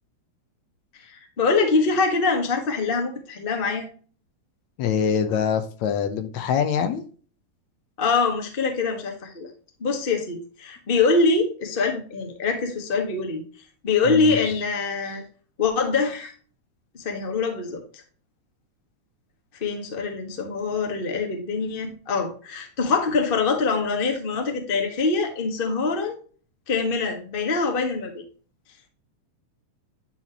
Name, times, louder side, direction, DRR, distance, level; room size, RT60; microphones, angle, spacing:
voice 1, 1.0-3.9 8.0-9.5 9.8-13.4 13.8-15.2 15.6-16.3 16.9-18.0 19.6-26.2 26.7-28.2, left 4 dB, 35° left, 0.8 m, -24 dB
voice 2, 4.8-7.0 14.1-14.6, left 7 dB, 75° left, 2.0 m, -24 dB
9.8 x 4.4 x 2.9 m
omnidirectional pair, 3.4 m